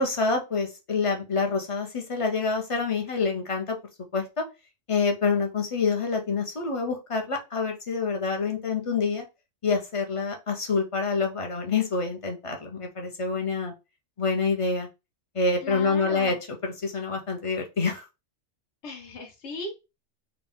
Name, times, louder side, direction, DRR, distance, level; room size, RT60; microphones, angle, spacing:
voice 1, 0.0-3.8 4.1-4.4 4.9-9.2 9.6-13.7 14.2-14.9 15.3-16.3 16.6-18.0, left 4 dB, 35° left, 3 dB, 0.6 m, -27 dB
voice 2, 15.6-16.4 18.8-19.7, left 2 dB, 65° left, 2 dB, 1.1 m, -37 dB
4.0 x 2.3 x 3.6 m, 0.27 s
omnidirectional pair, 1.3 m